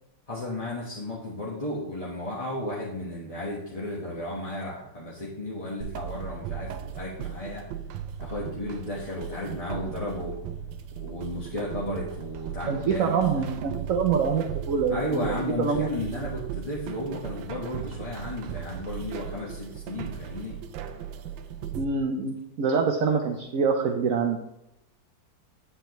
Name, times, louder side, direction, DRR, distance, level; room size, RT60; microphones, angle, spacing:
voice 1, 0.3-7.7 8.2-10.4 10.9-13.5 14.9-20.6, left 1 dB, 20° left, -6 dB, 1.1 m, -34 dB
sound 1, 5.8-21.9, right 9 dB, 85° right, 1.3 m, -37 dB
voice 2, 12.7-15.9 16.2-16.3 21.7-24.4, right 5 dB, 60° right, 3 dB, 0.9 m, -25 dB
7.9 x 7.8 x 3.0 m, 0.87 s
omnidirectional pair, 2.0 m